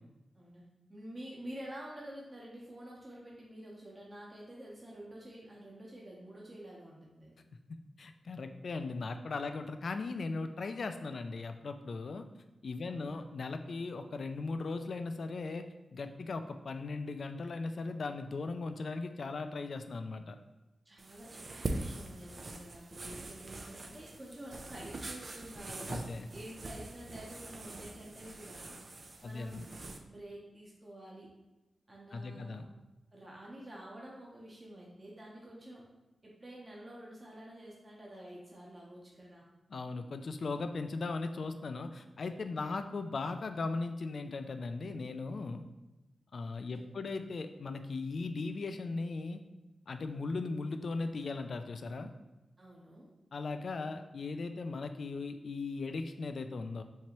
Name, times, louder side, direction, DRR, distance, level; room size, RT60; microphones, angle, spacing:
voice 1, 0.9-7.4 12.8-13.1 20.8-25.9 26.3-28.8 29.2-29.7 30.0-31.3 31.9-32.6 33.1-35.9 36.2-39.5 42.5-42.6 46.7-47.1 52.6-53.1, right 1 dB, 30° right, -4 dB, 0.9 m, -49 dB
voice 2, 7.7-12.2 12.6-15.7 15.9-20.4 25.9-26.3 29.2-29.7 32.1-32.6 39.7-45.6 46.3-49.4 49.9-52.1 53.3-56.8, left 3 dB, 65° left, 8 dB, 0.3 m, -38 dB
sound 1, 21.0-30.0, right 2 dB, 50° right, 0.4 m, -43 dB
4.5 x 2.8 x 3.0 m, 1.1 s
cardioid pair, 70°, 0 cm